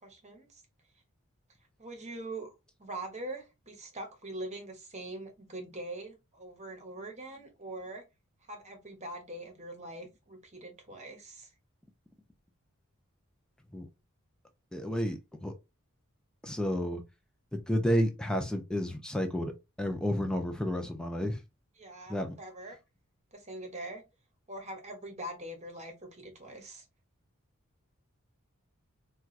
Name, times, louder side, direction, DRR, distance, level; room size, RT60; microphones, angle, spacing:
voice 1, 0.0-0.6 1.8-2.5 2.8-8.0 8.5-11.5 21.8-22.8 23.3-24.0 24.5-26.8, right 1 dB, 30° right, 1.0 m, -43 dB
voice 2, 14.7-15.5 16.4-17.0 17.5-19.5 19.8-21.4 22.1-22.3, equal, 5° left, 0.5 m, -31 dB
4.3 x 2.3 x 2.4 m
head